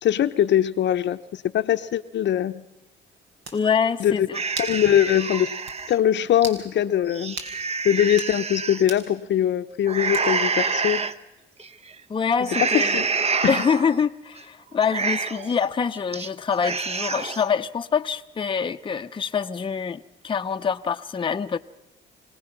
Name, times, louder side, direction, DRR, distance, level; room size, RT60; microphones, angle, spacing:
voice 1, 0.0-2.6 4.0-4.3 4.6-5.5 5.9-7.4 7.8-11.1 12.7-13.0 13.4-13.6, left 10 dB, 65° left, 0.7 m, -22 dB
sound 1, 3.0-3.1 3.4-3.6 4.6-4.8 5.2-5.3 5.7-5.8 6.4-6.6 7.4-7.6 8.1-8.3 8.9-9.1 10.1-10.5, right 3 dB, 70° right, 3.5 m, -36 dB
voice 2, 3.5-4.4 12.1-13.1 13.5-21.6, left 6 dB, 25° left, 0.6 m, -25 dB
sound 2, 4.3-5.9 6.4-6.5 7.0-8.8 9.9-11.1 11.6-11.9 12.4-14.0 14.4-14.5 14.8-15.5 15.9-16.3 16.5-17.5, right 4 dB, 30° right, 0.9 m, -27 dB
26.0 x 18.0 x 5.9 m
cardioid pair, 90°, 20 cm